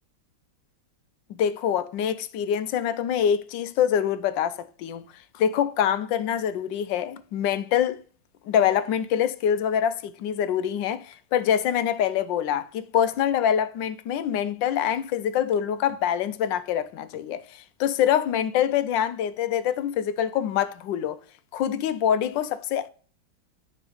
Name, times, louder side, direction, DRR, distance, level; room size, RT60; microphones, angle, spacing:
voice 1, 1.3-5.1 5.3-8.0 8.5-21.2 21.5-22.9, left 9 dB, 75° left, 1.2 m, -25 dB
9.9 x 3.8 x 5.0 m
omnidirectional pair, 2.2 m